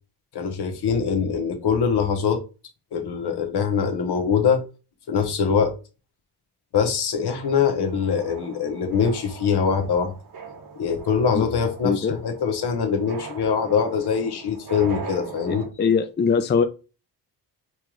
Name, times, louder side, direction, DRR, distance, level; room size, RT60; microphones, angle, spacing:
voice 1, 0.3-2.4 2.9-4.6 5.1-5.7 6.7-10.1 10.8-15.6, left 6 dB, 70° left, 0.9 m, -23 dB
sound 1, 7.4-15.7, right 5 dB, 50° right, 1.0 m, -41 dB
voice 2, 11.8-12.1 15.5-16.7, left 6 dB, 25° left, 0.4 m, -22 dB
4.4 x 2.4 x 3.0 m
cardioid pair, 75°, 41 cm